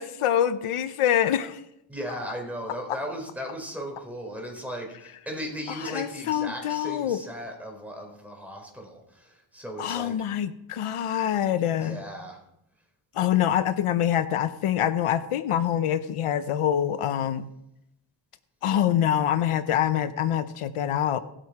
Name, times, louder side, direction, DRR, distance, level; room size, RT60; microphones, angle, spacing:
voice 1, 0.0-1.6 5.9-7.2 9.8-12.0 13.1-17.5 18.6-21.2, left 10 dB, 90° left, 13 dB, 0.8 m, -25 dB
voice 2, 1.9-10.2 11.8-12.4, equal, 5° right, 1 dB, 4.2 m, -37 dB
18.5 x 7.6 x 4.8 m, 0.83 s
wide cardioid pair, 100°, 50 cm